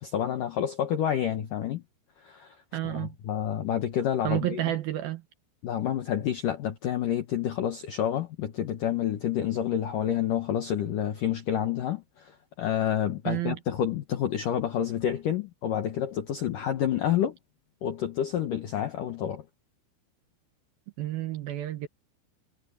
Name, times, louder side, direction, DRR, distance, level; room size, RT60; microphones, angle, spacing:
voice 1, 0.0-1.8 2.2-2.6 2.8-4.6 5.6-17.4 17.8-19.4, left 10 dB, 85° left, 1.8 m, -29 dB
voice 2, 2.7-3.2 4.2-5.2 13.3-13.6 21.0-21.9, right 14 dB, 80° right, 2.1 m, -30 dB
omnidirectional pair, 6.0 m